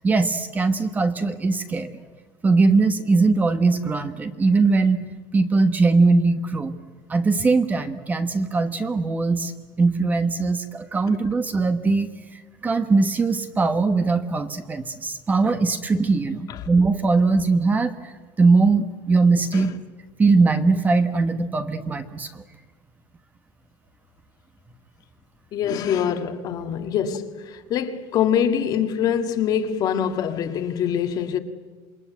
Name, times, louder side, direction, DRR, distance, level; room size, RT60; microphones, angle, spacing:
voice 1, 0.0-1.9 2.4-5.0 5.3-6.8 7.1-9.5 9.8-12.1 12.6-18.1 18.4-19.7 20.2-22.3, right 3 dB, 15° right, 1.2 m, -20 dB
voice 2, 25.5-31.4, left 8 dB, 40° left, 1.8 m, -24 dB
27.5 x 21.0 x 9.2 m
cardioid pair, 155°, 10 cm